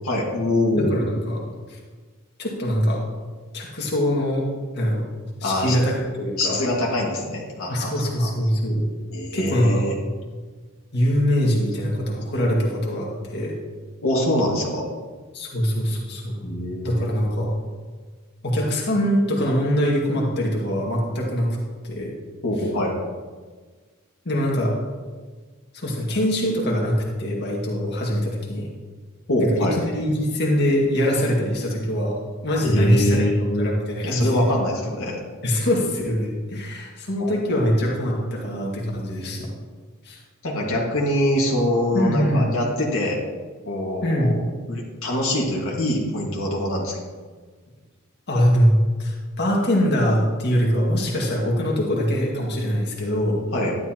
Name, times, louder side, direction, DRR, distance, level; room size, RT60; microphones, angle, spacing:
voice 1, 0.0-1.1 5.4-5.8 6.4-8.3 9.1-9.9 14.0-14.9 16.4-17.0 22.4-22.9 29.3-29.8 32.6-33.7 34.0-35.2 37.2-37.7 40.4-43.2 43.7-44.4 44.7-47.0 53.5-53.8, left 1 dB, 65° left, -3 dB, 1.9 m, -24 dB
voice 2, 0.8-1.4 1.7-1.8 2.4-3.0 3.5-4.4 4.7-5.0 5.4-6.6 7.7-8.9 9.3-9.8 10.9-13.6 15.3-16.4 16.8-17.5 18.4-21.6 21.8-22.1 24.3-24.7 25.7-28.7 29.5-33.3 33.6-34.5 35.4-39.5 40.0-40.2 41.9-42.5 44.0-44.4 48.3-48.7 49.0-53.4, equal, 50° left, -2 dB, 2.0 m, -23 dB
12.0 x 11.0 x 3.0 m, 1.4 s
head